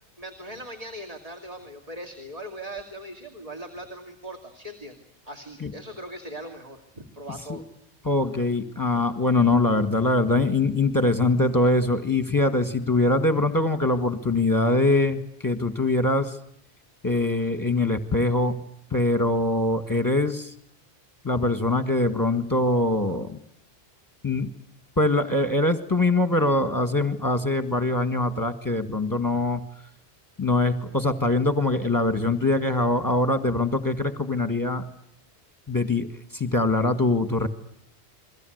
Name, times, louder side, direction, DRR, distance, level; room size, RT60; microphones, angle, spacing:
voice 1, 0.2-5.0 5.2-7.7, right 1 dB, 35° right, 3 dB, 2.8 m, -40 dB
voice 2, 8.0-16.4 17.0-18.6 18.9-20.5 21.2-23.4 24.2-24.5 25.0-29.6 30.4-34.8 35.7-36.1 36.3-37.5, left 2 dB, 20° left, 8 dB, 1.8 m, -23 dB
29.5 x 22.5 x 8.0 m, 0.70 s
omnidirectional pair, 1.1 m